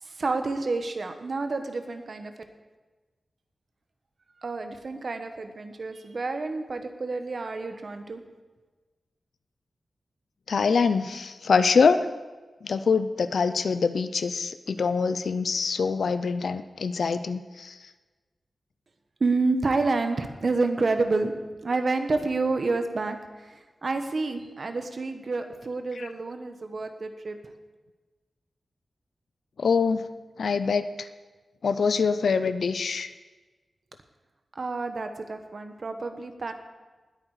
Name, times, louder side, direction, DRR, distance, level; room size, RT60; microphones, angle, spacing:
voice 1, 0.0-2.3 4.4-8.2 19.2-21.3 21.6-27.5 34.5-36.5, right 3 dB, 50° right, 7 dB, 1.3 m, -29 dB
voice 2, 10.5-12.0 12.6-17.8 26.0-26.1 29.6-30.0 30.4-31.1 31.6-33.1, left 5 dB, 75° left, 12 dB, 0.6 m, -24 dB
19.5 x 8.8 x 4.9 m, 1.3 s
wide cardioid pair, 140°, 0 cm